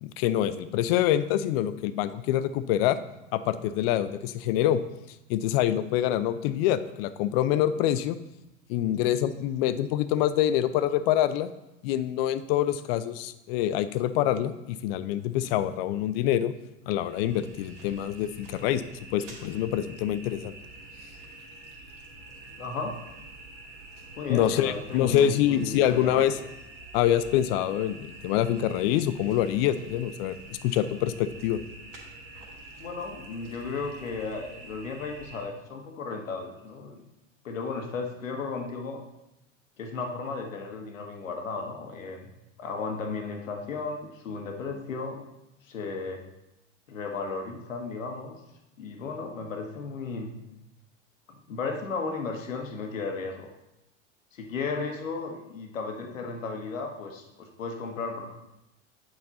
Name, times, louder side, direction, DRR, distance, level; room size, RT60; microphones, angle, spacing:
voice 1, 0.0-3.0 3.3-4.8 5.3-8.2 8.7-11.5 11.8-16.5 16.9-18.8 19.1-20.6 24.3-26.3 26.9-30.4 30.6-31.6, left 11 dB, 50° left, 13 dB, 0.6 m, -25 dB
sound 1, 16.9-35.5, right 2 dB, 70° right, 2.2 m, -47 dB
voice 2, 22.6-23.0 24.2-26.5 32.8-37.0 37.4-39.0 39.8-42.3 42.6-45.2 45.6-46.2 46.9-48.3 48.8-50.3 51.5-53.5 54.3-58.3, left 4 dB, 80° left, 3 dB, 1.3 m, -34 dB
8.0 x 5.2 x 4.0 m, 0.90 s
hypercardioid pair, 90°, 38 cm